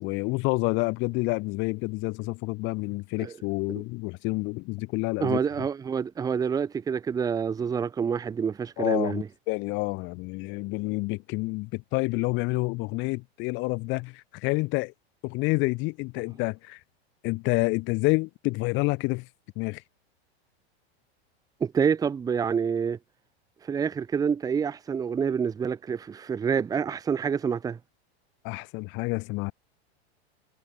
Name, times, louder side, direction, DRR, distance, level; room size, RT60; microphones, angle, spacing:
voice 1, 0.0-5.4 8.8-14.9 15.2-16.8 17.2-19.3 19.6-19.8 28.4-29.5, left 25 dB, 35° left, 1.1 m, -28 dB
voice 2, 5.2-9.3 21.6-23.0 23.7-27.8, right 6 dB, 10° right, 0.8 m, -27 dB
supercardioid pair, 145°, 32 cm